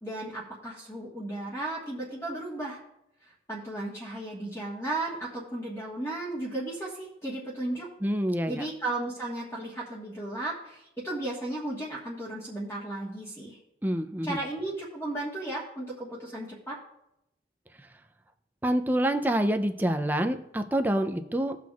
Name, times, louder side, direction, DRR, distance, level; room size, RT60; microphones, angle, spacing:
voice 1, 0.0-2.8 3.2-7.9 8.5-13.6 14.2-16.8, right 2 dB, 15° left, -5 dB, 1.4 m, -35 dB
voice 2, 8.0-8.6 13.8-14.4 18.6-21.6, right 1 dB, 10° right, 6 dB, 0.4 m, -27 dB
18.0 x 6.0 x 2.4 m, 0.82 s
head